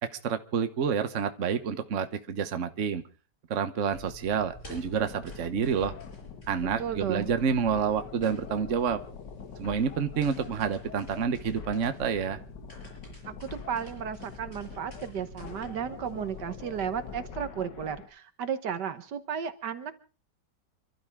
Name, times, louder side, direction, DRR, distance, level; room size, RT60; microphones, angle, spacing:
voice 1, 0.0-3.0 3.5-5.9 6.5-9.0 9.6-12.4, right 7 dB, 50° right, 9 dB, 1.3 m, -28 dB
sound 1, 3.9-17.3, left 1 dB, 40° left, 7.1 m, -49 dB
sound 2, 4.7-18.1, left 7 dB, 80° left, 2.0 m, -45 dB
voice 2, 6.8-7.3 13.3-20.0, right 8 dB, 75° right, 12 dB, 1.8 m, -34 dB
29.0 x 12.5 x 3.6 m, 0.36 s
omnidirectional pair, 1.9 m